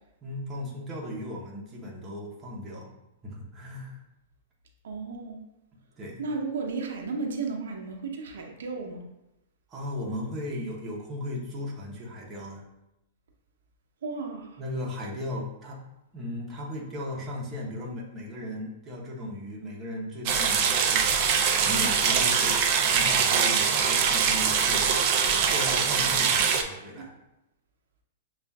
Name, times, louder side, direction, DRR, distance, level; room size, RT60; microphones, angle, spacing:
voice 1, 0.2-2.9 3.2-4.0 6.0-6.2 9.7-12.6 14.6-15.8 16.1-21.3 21.6-22.5 22.8-24.9 25.3-26.3 26.6-27.1, left 1 dB, 15° right, -4 dB, 0.8 m, -36 dB
voice 2, 4.8-5.4 6.2-9.0 14.0-14.6 26.9-27.1, right 4 dB, 85° right, 1 dB, 0.7 m, -34 dB
sound 1, 20.3-26.6, right 6 dB, 40° right, 0.4 m, -23 dB
6.7 x 2.4 x 2.3 m, 0.89 s
hypercardioid pair, 155°, 0 cm